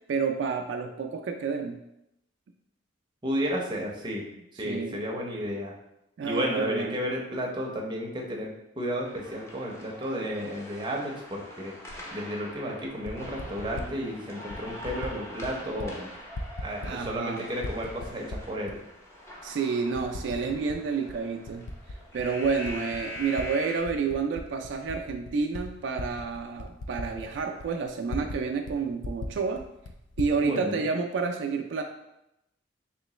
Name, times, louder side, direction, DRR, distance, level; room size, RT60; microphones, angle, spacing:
voice 1, 0.1-1.8 4.6-5.0 6.2-7.0 16.8-17.4 19.4-21.7 22.1-29.7 30.2-31.8, right 5 dB, 75° right, 4 dB, 0.3 m, -29 dB
voice 2, 3.2-4.2 4.6-5.7 6.2-11.7 12.1-16.1 16.6-18.8 30.4-30.8, equal, 25° right, -1 dB, 0.6 m, -32 dB
sound 1, 9.0-23.8, equal, 15° left, 0.6 m, -44 dB
Typing, 11.9-12.0 12.8-13.9 14.5-15.1 15.4-15.9 16.2-17.3 17.6-18.8 19.3-19.4 20.0-20.8 21.1-23.5 23.8-28.4 28.7-28.8 29.0-30.4, left 2 dB, 75° left, 0.4 m, -38 dB
3.7 x 3.1 x 3.1 m, 0.86 s
head